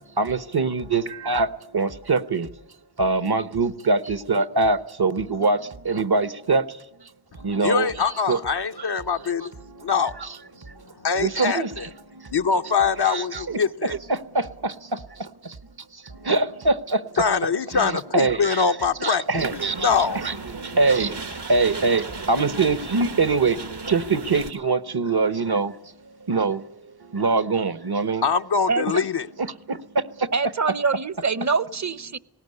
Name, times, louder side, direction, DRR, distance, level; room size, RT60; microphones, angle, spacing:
voice 1, 0.2-2.5 3.0-7.9 8.3-8.4 9.7-9.9 10.2-10.3 10.6-10.8 11.1-11.7 12.1-12.3 13.0-15.6 15.9-17.2 17.7-18.6 19.0-19.9 20.1-25.8 26.0-26.6 27.0-28.2 29.4-30.3, right 3 dB, 70° right, 1.0 m, -24 dB
voice 2, 7.6-9.5 9.8-10.1 11.0-11.9 12.3-13.9 17.2-19.3 19.5-20.2 28.2-29.3, left 6 dB, 75° left, 0.7 m, -23 dB
sound 1, 19.4-24.5, right 3 dB, 85° right, 1.6 m, -35 dB
voice 3, 28.7-29.1 30.3-32.2, right 4 dB, 45° right, 0.7 m, -24 dB
19.0 x 18.0 x 9.6 m
wide cardioid pair, 45°, 40 cm